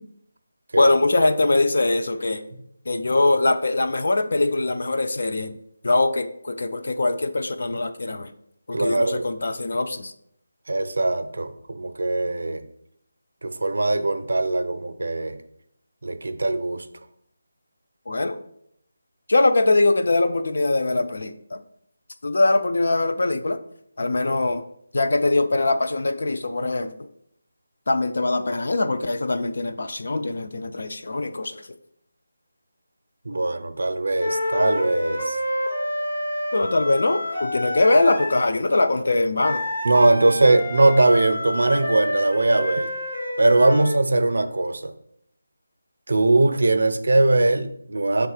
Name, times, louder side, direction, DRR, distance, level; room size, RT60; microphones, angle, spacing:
voice 1, 0.8-2.4 2.9-5.6 5.8-8.3 8.7-10.1 18.1-18.4 19.3-21.6 22.2-23.6 24.0-24.6 24.9-27.0 27.9-31.7 36.5-39.6, left 2 dB, 45° left, 8 dB, 0.4 m, -22 dB
voice 2, 8.7-9.3 10.7-12.6 13.4-15.4 16.0-16.9 33.3-35.4 39.8-42.9 43.4-44.9 46.1-48.3, right 2 dB, 65° right, 10 dB, 0.5 m, -21 dB
sound 1, 34.2-38.5 39.4-44.0, left 1 dB, 85° left, 2.4 m, -28 dB
5.4 x 3.5 x 4.9 m, 0.72 s
figure-of-eight pair, 180°, 0 cm